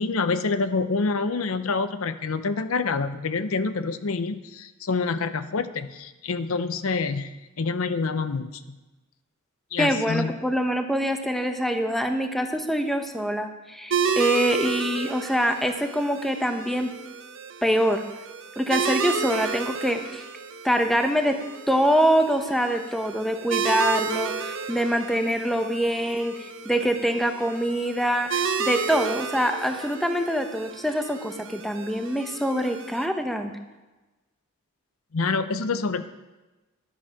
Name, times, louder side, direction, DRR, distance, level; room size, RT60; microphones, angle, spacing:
voice 1, 0.0-8.8 9.7-10.3 35.1-36.1, left 4 dB, 80° left, 11 dB, 0.7 m, -27 dB
voice 2, 9.8-16.9 17.6-18.0 18.6-20.2 20.6-21.4 21.7-33.5, equal, ahead, 5 dB, 0.9 m, -24 dB
sound 1, 13.9-33.1, right 5 dB, 65° right, 0.9 m, -32 dB
11.5 x 9.4 x 5.8 m, 1.1 s
head